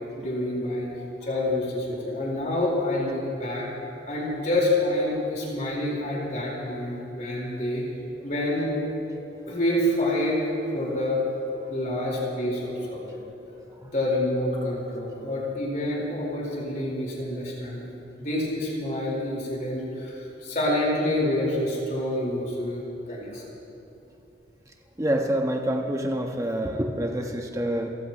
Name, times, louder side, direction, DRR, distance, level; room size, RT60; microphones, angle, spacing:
voice 1, 0.2-0.9 1.2-3.7 4.1-7.8 8.2-8.8 9.5-10.5 10.7-11.2 11.6-13.2 13.8-23.4, left 1 dB, 45° left, -4 dB, 4.6 m, -27 dB
voice 2, 25.0-27.9, right 1 dB, 15° right, 2 dB, 1.3 m, -26 dB
29.0 x 15.0 x 3.2 m, 2.9 s
head